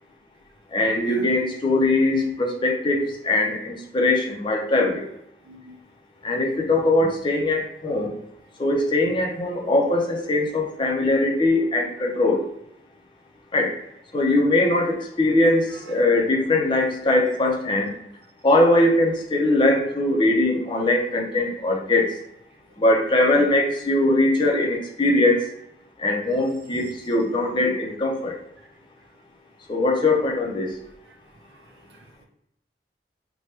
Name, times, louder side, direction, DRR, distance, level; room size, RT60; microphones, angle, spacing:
voice 1, 0.7-5.0 6.2-8.1 8.6-12.5 13.5-13.7 14.1-17.9 18.4-22.1 22.8-25.4 26.0-28.3 29.7-30.7, left 2 dB, 25° left, -1 dB, 0.5 m, -21 dB
voice 2, 5.5-5.8 6.3-6.8 14.2-14.4 15.7-16.0 21.3-21.4 26.8-26.9 27.4-27.5 28.6-28.7 30.0-30.1 31.1-31.2 31.5-32.2, right 2 dB, 70° right, 3 dB, 0.6 m, -47 dB
3.2 x 2.2 x 2.8 m, 0.78 s
head